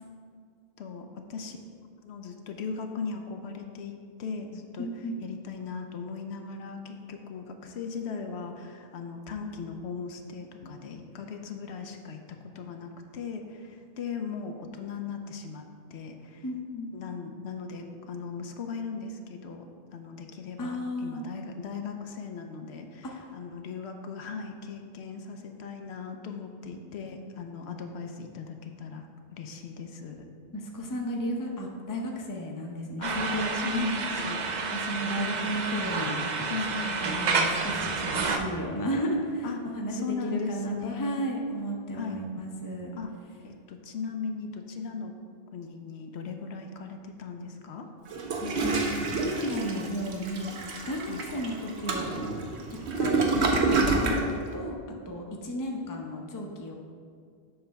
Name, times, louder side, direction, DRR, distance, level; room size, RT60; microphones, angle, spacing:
voice 1, 0.8-1.6 2.0-4.9 5.2-16.5 16.9-30.3 33.0-33.2 33.5-34.4 35.1-35.6 36.5-37.0 39.4-39.6 39.9-41.2 41.9-42.2 42.9-43.1 43.4-45.1 45.5-47.9 51.1-51.2, left 5 dB, 75° left, 5 dB, 0.9 m, -38 dB
voice 2, 4.8-5.2 16.4-17.0 20.6-21.2 23.1-23.2 30.5-33.9 34.7-36.2 37.0-39.5 39.7-42.9 48.4-50.5 50.9-52.1 53.0-54.8 55.1-56.7, equal, 20° left, 0 dB, 0.6 m, -33 dB
sound 1, 33.0-38.4, right 4 dB, 55° right, 0.5 m, -30 dB
Toilet flush, 48.1-54.3, right 3 dB, 75° right, 1.1 m, -28 dB
7.7 x 3.3 x 5.7 m, 2.2 s
omnidirectional pair, 1.1 m